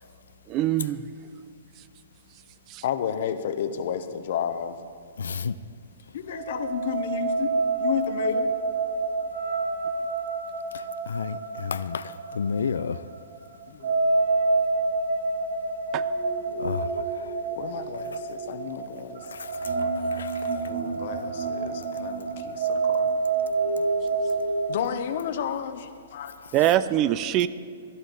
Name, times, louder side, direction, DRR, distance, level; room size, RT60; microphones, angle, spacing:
voice 1, 0.5-1.1 2.7-2.8 15.9-16.0 26.5-27.5, right 12 dB, 35° right, 15 dB, 0.4 m, -23 dB
voice 2, 2.8-4.8 6.1-7.5 7.8-8.5 13.7-14.0 17.6-19.2 20.4-23.1 24.7-26.5, left 8 dB, 60° left, 10 dB, 0.9 m, -32 dB
voice 3, 5.2-5.5 11.1-13.0 16.6-16.9 19.3-19.5 20.2-20.3, left 6 dB, 85° left, 14 dB, 0.4 m, -30 dB
sound 1, 6.3-24.8, right 3 dB, 60° right, 1.4 m, -28 dB
16.0 x 11.5 x 4.0 m, 2.2 s
hypercardioid pair, 130°, 0 cm